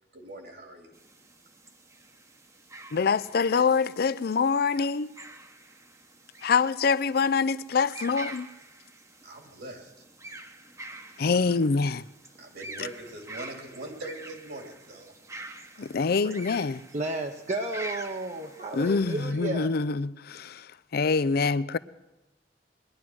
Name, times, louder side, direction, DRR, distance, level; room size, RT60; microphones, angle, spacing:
voice 1, 0.1-0.9 9.2-9.9 11.3-11.6 12.4-15.1 15.8-16.4, right 2 dB, 70° right, 2.6 m, -42 dB
sound 1, 0.9-19.3, right 2 dB, 20° right, 0.9 m, -46 dB
voice 2, 2.9-5.1 6.4-8.5 11.2-12.0 15.8-16.8 18.7-20.6 20.9-21.8, left 5 dB, 60° left, 0.5 m, -25 dB
voice 3, 16.9-19.7, right 2 dB, 40° right, 0.8 m, -32 dB
20.0 x 11.0 x 6.2 m
head